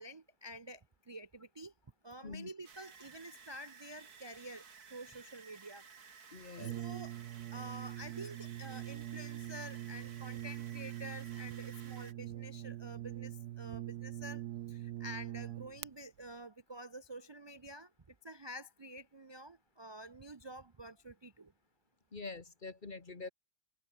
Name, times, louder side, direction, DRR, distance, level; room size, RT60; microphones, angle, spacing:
voice 1, 0.0-1.7 2.0-4.6 4.9-5.8 6.6-7.2 7.5-21.5, right 1 dB, 45° right, 0.3 m, -49 dB
sound 1, 2.6-12.1, right 6 dB, 70° right, 2.5 m, -56 dB
voice 2, 6.3-6.8 22.1-23.3, left 3 dB, 30° left, 1.6 m, -45 dB
Brass instrument, 6.6-15.9, right 14 dB, 85° right, 1.3 m, -43 dB
omnidirectional pair, 1.7 m